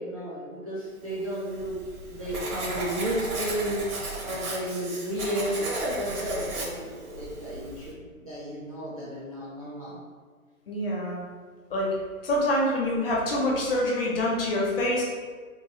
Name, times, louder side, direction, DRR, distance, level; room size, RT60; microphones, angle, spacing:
voice 1, 0.0-1.8 2.1-3.8 4.2-10.0, equal, 30° right, -9 dB, 0.3 m, -32 dB
Writing, 1.2-7.9, right 2 dB, 85° right, 0.9 m, -36 dB
voice 2, 10.7-11.2 11.7-11.9 12.2-15.0, left 1 dB, 40° left, -3 dB, 0.7 m, -26 dB
3.0 x 2.1 x 2.7 m, 1.5 s
hypercardioid pair, 145°, 42 cm